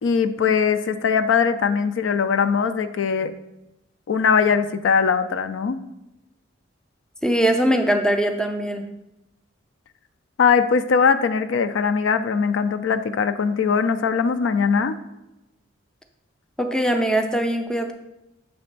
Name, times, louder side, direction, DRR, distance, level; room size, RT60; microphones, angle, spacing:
voice 1, 0.0-3.3 4.1-5.8 10.4-15.0, left 6 dB, 65° left, 10 dB, 0.4 m, -20 dB
voice 2, 7.2-8.8 16.6-17.9, right 1 dB, 5° left, 5 dB, 0.4 m, -21 dB
7.0 x 3.3 x 5.2 m, 0.92 s
head